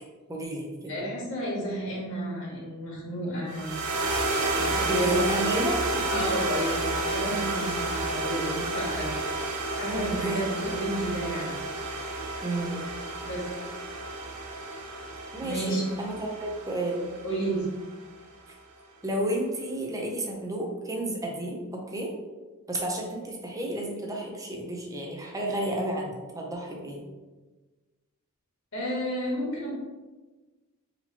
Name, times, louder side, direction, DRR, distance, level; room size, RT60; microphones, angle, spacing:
voice 1, 0.3-1.0 4.8-6.3 9.9-10.5 12.4-12.9 15.3-17.1 19.0-22.2 22.7-27.0, right 1 dB, 15° right, -1 dB, 0.6 m, -31 dB
voice 2, 0.9-3.7 4.5-5.1 6.1-9.4 9.8-11.6 13.2-13.5 15.4-15.8 17.2-17.6 28.7-29.7, right 1 dB, 60° left, -5 dB, 1.4 m, -32 dB
sound 1, 3.5-17.9, right 2 dB, 80° right, 0.6 m, -31 dB
4.2 x 2.9 x 2.8 m, 1.2 s
head